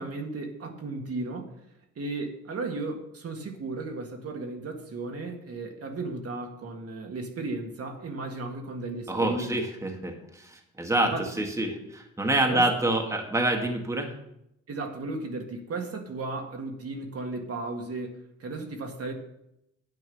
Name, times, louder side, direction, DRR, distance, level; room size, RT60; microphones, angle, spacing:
voice 1, 0.0-1.5 2.0-9.6 11.0-11.2 12.5-12.6 14.7-19.1, right 3 dB, 50° right, 2 dB, 1.8 m, -35 dB
voice 2, 9.1-14.1, right 1 dB, 10° right, 2 dB, 1.6 m, -27 dB
9.8 x 7.7 x 5.4 m, 0.81 s
cardioid pair, 90°, 30 cm